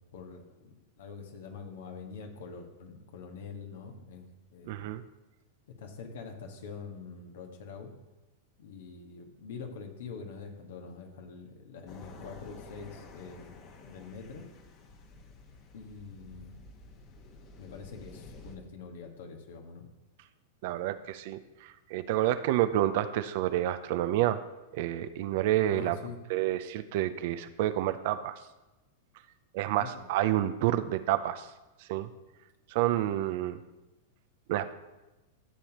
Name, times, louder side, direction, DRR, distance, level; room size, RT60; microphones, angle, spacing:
voice 1, 0.0-4.2 4.5-4.9 5.8-7.9 8.6-13.6 13.8-14.5 15.7-16.6 17.6-19.9 25.7-26.2 29.7-30.1, left 5 dB, 70° left, 4 dB, 1.5 m, -45 dB
voice 2, 4.7-5.0 20.6-24.4 24.7-26.0 26.3-28.4 29.5-31.5 31.9-32.1 32.7-33.6 34.5-34.7, right 13 dB, 60° right, 12 dB, 0.5 m, -29 dB
sound 1, 11.9-18.6, left 3 dB, 45° left, 1.4 m, -51 dB
13.0 x 7.1 x 3.0 m, 1.1 s
hypercardioid pair, 110°, 0 cm